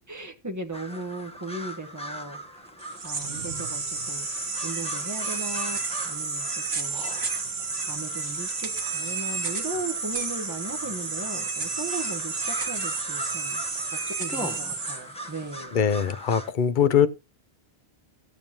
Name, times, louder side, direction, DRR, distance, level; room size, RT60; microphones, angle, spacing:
voice 1, 0.1-2.7 3.0-7.2 7.8-13.6 13.9-15.7, right 2 dB, 15° right, 1.2 m, -37 dB
sound 1, 0.7-16.5, equal, 5° left, 1.0 m, -40 dB
sound 2, 2.8-15.6, right 4 dB, 80° right, 1.7 m, -31 dB
voice 2, 15.7-17.1, left 8 dB, 55° left, 0.8 m, -22 dB
17.5 x 7.0 x 2.9 m
omnidirectional pair, 1.1 m